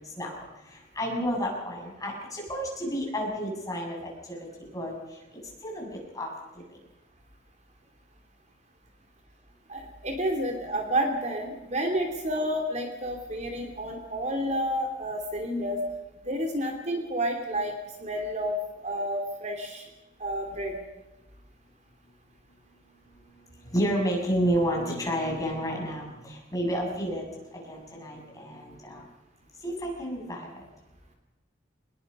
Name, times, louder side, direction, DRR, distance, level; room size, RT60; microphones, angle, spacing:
voice 1, 0.2-5.2 5.6-6.3 23.6-27.2 27.5-29.0 29.6-30.5, equal, 20° left, -1 dB, 6.8 m, -31 dB
voice 2, 9.7-15.8 16.3-17.7 18.0-18.6 18.8-19.8 20.2-20.8, equal, 40° right, 3 dB, 2.8 m, -30 dB
25.5 x 20.5 x 5.4 m, 1.1 s
head